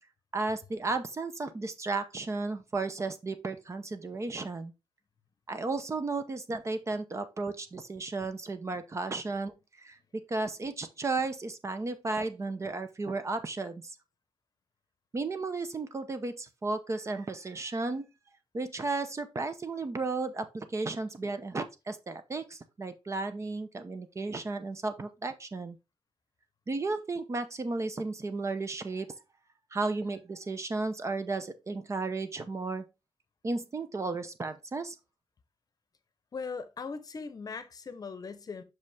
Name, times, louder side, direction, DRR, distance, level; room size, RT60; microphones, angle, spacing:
voice 1, 0.3-4.7 5.5-9.5 9.8-13.9 15.1-18.1 18.5-25.8 26.7-29.1 29.7-32.8 33.4-34.9, right 3 dB, 30° right, 0.7 m, -34 dB
voice 2, 36.3-38.6, left 5 dB, 40° left, 0.8 m, -39 dB
6.3 x 5.0 x 3.4 m
wide cardioid pair, 135°, 10 cm